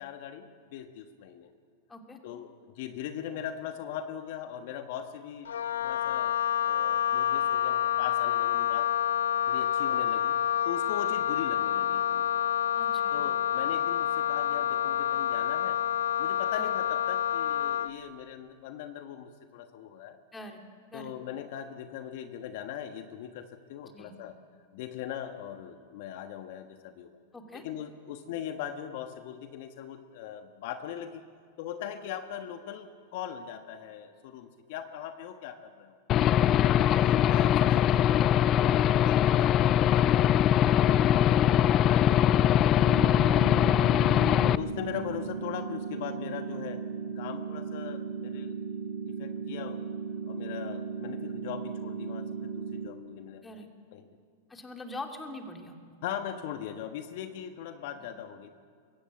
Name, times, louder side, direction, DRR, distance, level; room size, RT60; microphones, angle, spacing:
voice 1, 0.0-1.5 2.2-5.5 5.8-6.3 6.6-8.9 9.5-10.4 10.6-12.4 13.1-15.8 16.2-20.2 20.9-24.3 24.7-27.1 27.5-31.2 31.6-36.0 36.8-40.4 40.6-43.9 44.6-46.8 47.1-48.6 49.0-49.8 50.2-54.1 56.0-58.5, left 9 dB, 60° left, 7 dB, 1.2 m, -40 dB
Wind instrument woodwind instrument, 5.5-17.9, left 10 dB, 85° left, 0.6 m, -28 dB
voice 2, 12.8-13.2 16.5-16.7 20.3-20.6 20.9-21.1 23.9-24.1 27.3-27.6 53.4-53.7 54.5-55.8 58.0-58.1, left 2 dB, 15° left, 3 dB, 2.8 m, -43 dB
Aircraft / Engine, 36.1-44.6, left 10 dB, 35° left, 0.5 m, -22 dB
sound 1, 42.9-52.9, right 5 dB, 80° right, 1.4 m, -36 dB
23.5 x 14.0 x 8.6 m, 2.1 s
hypercardioid pair, 115°, 0 cm